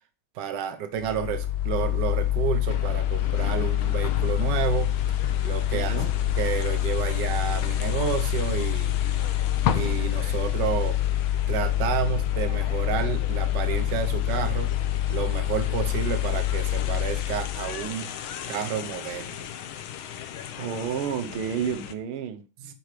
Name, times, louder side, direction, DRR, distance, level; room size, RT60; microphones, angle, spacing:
voice 1, 0.4-5.0 5.4-6.0 6.4-9.0 9.7-11.0 11.5-14.7 15.1-18.1 18.5-19.5 22.6-22.7, right 8 dB, 60° right, 1.6 m, -30 dB
Mechanical fan, 1.0-17.8, left 12 dB, 55° left, 1.2 m, -26 dB
sound 1, 2.7-21.9, left 9 dB, 75° left, 1.6 m, -37 dB
voice 2, 5.7-6.1 20.6-22.4, right 8 dB, 85° right, 1.7 m, -30 dB
10.5 x 4.8 x 5.0 m
omnidirectional pair, 2.3 m